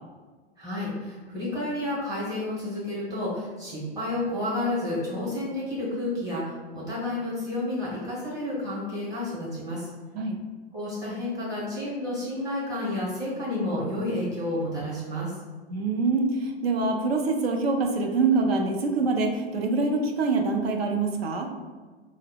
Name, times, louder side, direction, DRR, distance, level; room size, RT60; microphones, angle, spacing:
voice 1, 0.6-9.9 10.7-15.3, left 1 dB, 10° right, -8 dB, 1.2 m, -30 dB
voice 2, 15.7-21.5, right 3 dB, 70° right, 3 dB, 0.5 m, -25 dB
3.7 x 2.0 x 2.3 m, 1.4 s
figure-of-eight pair, 95°, 32 cm